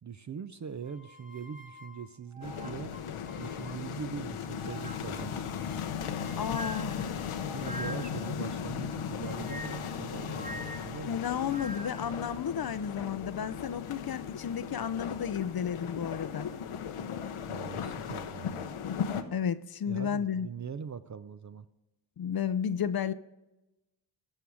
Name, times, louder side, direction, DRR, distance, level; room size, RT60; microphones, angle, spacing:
voice 1, 0.0-2.9 3.4-5.6 7.5-11.2 17.5-18.7 19.9-21.7, right 7 dB, 35° right, 0.5 m, -41 dB
sound 1, 0.8-4.1 4.5-8.3 9.1-12.1, equal, 15° right, 1.0 m, -46 dB
sound 2, 2.4-19.2, left 7 dB, 80° left, 0.9 m, -37 dB
voice 2, 6.4-7.0 8.0-8.1 11.1-16.5 19.3-20.5 22.2-23.1, left 8 dB, 50° left, 0.6 m, -32 dB
14.5 x 5.7 x 4.8 m
cardioid pair, 50°, 50 cm